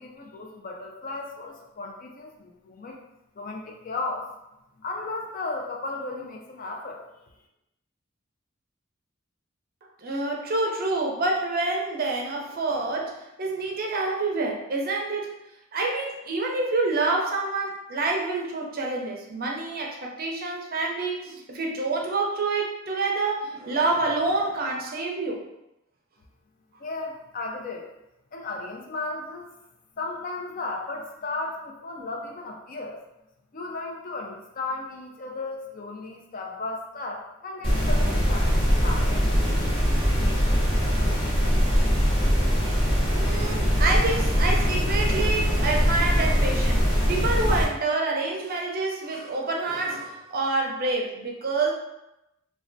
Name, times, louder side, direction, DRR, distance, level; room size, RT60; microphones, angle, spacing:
voice 1, 0.0-3.0 3.4-4.3 4.8-7.0 26.8-27.9 28.3-29.5 30.0-33.0 33.5-39.1, left 3 dB, 45° left, 1 dB, 0.4 m, -35 dB
voice 2, 10.0-13.1 13.4-15.3 15.7-25.4 43.1-51.7, right 3 dB, 45° right, 0 dB, 0.5 m, -27 dB
sound 1, 37.6-47.6, equal, 25° left, 0.8 m, -22 dB
3.2 x 2.2 x 2.5 m, 0.91 s
head